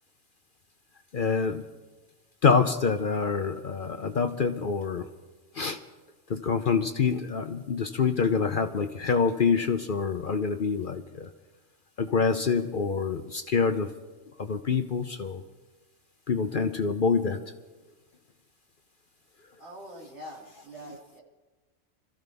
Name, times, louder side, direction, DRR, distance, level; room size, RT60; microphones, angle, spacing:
voice 1, 1.1-1.6 2.4-5.1 5.6-5.8 6.3-11.3 12.0-13.9 14.5-15.4 16.3-17.4, left 5 dB, 50° left, 7 dB, 0.8 m, -26 dB
voice 2, 19.6-21.2, equal, 65° right, -4 dB, 3.4 m, -44 dB
26.0 x 14.0 x 3.5 m, 1.3 s
omnidirectional pair, 1.3 m